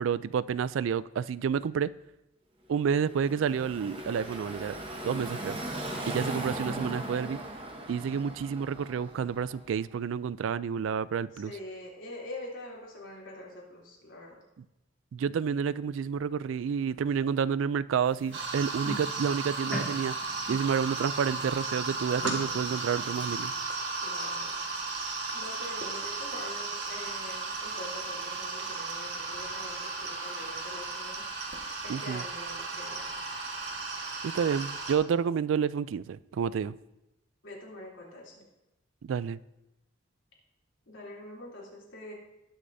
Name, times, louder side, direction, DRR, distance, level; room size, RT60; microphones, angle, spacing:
voice 1, 0.0-1.9 2.7-4.7 5.0-5.6 6.1-7.4 7.9-11.5 14.6-14.7 15.1-23.5 31.9-32.2 34.2-36.8 39.0-39.4, right 7 dB, 85° right, 0.3 m, -29 dB
Car passing by / Traffic noise roadway noise, 2.9-9.8, right 1 dB, 30° right, 1.0 m, -38 dB
voice 2, 11.3-14.4 24.0-24.8 25.3-31.2 31.8-33.1 37.4-38.4 40.9-42.1, left 1 dB, 85° left, 3.2 m, -44 dB
sound 1, 18.0-23.6, equal, 10° left, 3.0 m, -41 dB
sound 2, 18.3-34.9, right 3 dB, 60° right, 1.6 m, -35 dB
19.5 x 6.5 x 2.7 m
head